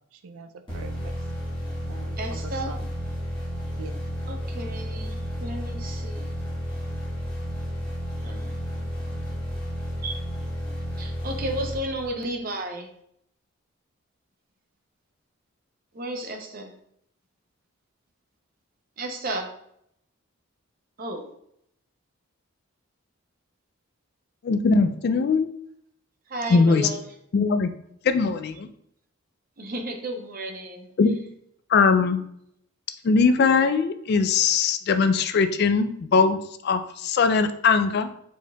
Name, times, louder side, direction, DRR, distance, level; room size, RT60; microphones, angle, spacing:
voice 1, 0.1-1.2 1.9-2.9 3.7-4.0, right 4 dB, 75° right, 9 dB, 0.4 m, -43 dB
sound 1, 0.7-12.4, equal, 25° left, 1.3 m, -32 dB
voice 2, 2.2-2.7 4.3-6.4 8.2-9.4 10.0-10.2 11.0-12.9 15.9-16.7 19.0-19.5 21.0-21.3 26.3-27.0 29.6-30.9, right 1 dB, 40° right, 3 dB, 0.7 m, -33 dB
voice 3, 24.4-25.5 26.5-26.9 27.3-27.7 28.0-28.7 31.0-31.1 31.7-32.2 33.0-36.4 36.6-38.1, left 4 dB, 50° left, 9 dB, 0.3 m, -20 dB
4.5 x 4.4 x 2.3 m, 0.72 s
head